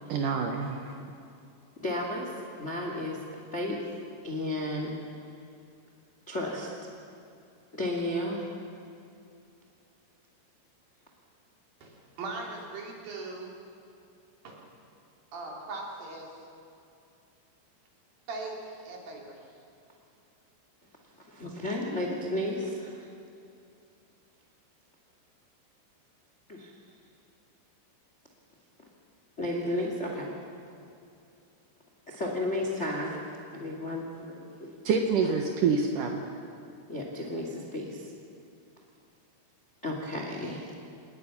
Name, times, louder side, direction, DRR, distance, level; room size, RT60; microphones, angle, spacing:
voice 1, 0.1-0.9 34.8-36.2, right 5 dB, 75° right, 3 dB, 1.9 m, -27 dB
voice 2, 1.8-3.2 3.5-3.8 4.2-4.9 6.3-6.7 7.7-8.5 21.3-23.1 26.5-26.7 29.4-30.3 32.1-34.9 35.2-35.3 36.9-38.1 39.8-40.8, left 1 dB, 30° left, 0 dB, 1.3 m, -33 dB
voice 3, 11.8-13.5 14.4-14.6 15.3-16.3 18.3-19.4, right 3 dB, 50° right, -1 dB, 4.6 m, -39 dB
27.5 x 20.0 x 6.0 m, 2.6 s
omnidirectional pair, 5.4 m